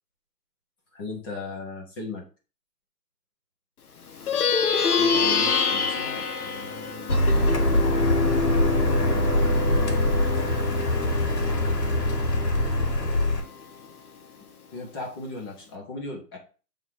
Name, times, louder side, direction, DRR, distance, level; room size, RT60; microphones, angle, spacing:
voice 1, 0.9-2.2 5.0-7.2 7.8-8.7 14.7-16.4, left 3 dB, 15° left, 0 dB, 0.9 m, -38 dB
Plucked string instrument, 4.1-13.8, left 5 dB, 65° left, 1.2 m, -27 dB
Car, 7.1-13.4, left 1 dB, 80° left, 2.2 m, -23 dB
7.4 x 3.7 x 3.5 m, 0.36 s
hypercardioid pair, 155°, 48 cm